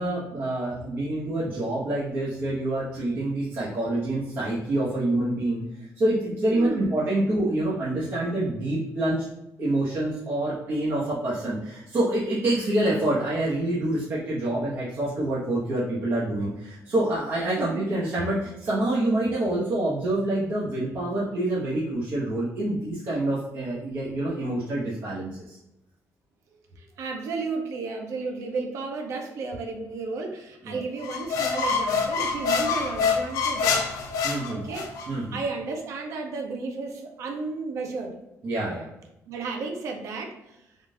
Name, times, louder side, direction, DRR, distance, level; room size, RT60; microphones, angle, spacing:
voice 1, 0.0-9.2 9.6-25.6 30.6-30.8 34.2-34.6 35.1-35.4 38.4-38.9, right 1 dB, 40° right, -9 dB, 1.1 m, -27 dB
voice 2, 6.5-6.9 17.6-17.8 26.8-33.8 34.5-34.9 35.3-38.1 39.3-40.6, right 4 dB, 60° right, 3 dB, 0.6 m, -33 dB
sound 1, 31.0-35.1, left 5 dB, 75° left, 0.6 m, -26 dB
3.7 x 2.5 x 3.7 m, 0.89 s
cardioid pair, 165°, 6 cm